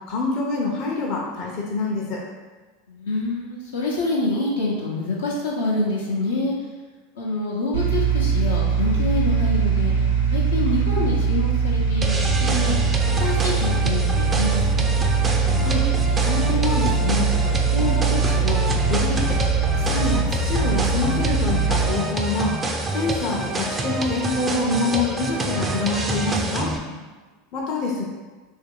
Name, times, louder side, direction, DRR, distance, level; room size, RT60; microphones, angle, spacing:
voice 1, 0.1-2.2 15.6-15.9 16.2-17.3 17.7-19.4 19.7-22.5 22.9-26.7 27.5-28.0, left 3 dB, 50° left, -2 dB, 0.7 m, -26 dB
voice 2, 2.9-6.5 7.1-9.9 10.3-12.8 13.2-14.9 26.8-27.0, left 2 dB, 80° left, -4 dB, 0.8 m, -26 dB
sound 1, 7.7-21.9, right 5 dB, 85° right, 0.7 m, -22 dB
sound 2, 12.0-26.8, right 2 dB, 20° right, 0.4 m, -27 dB
2.9 x 2.7 x 3.8 m, 1.3 s
hypercardioid pair, 90°, 0 cm